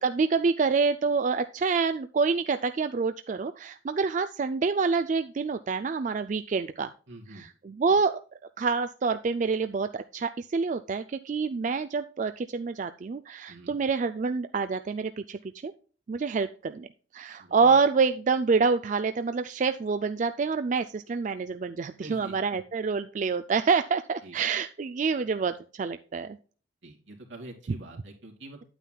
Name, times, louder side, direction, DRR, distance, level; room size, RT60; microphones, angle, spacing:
voice 1, 0.0-6.9 7.3-8.2 8.6-15.7 16.1-16.9 17.1-26.4, right 4 dB, 40° right, 10 dB, 0.3 m, -27 dB
voice 2, 7.1-7.4 13.5-13.8 17.4-17.8 22.0-22.6 24.2-24.4 26.8-28.6, right 1 dB, 75° right, 1 dB, 2.6 m, -46 dB
9.3 x 8.9 x 2.3 m, 0.40 s
head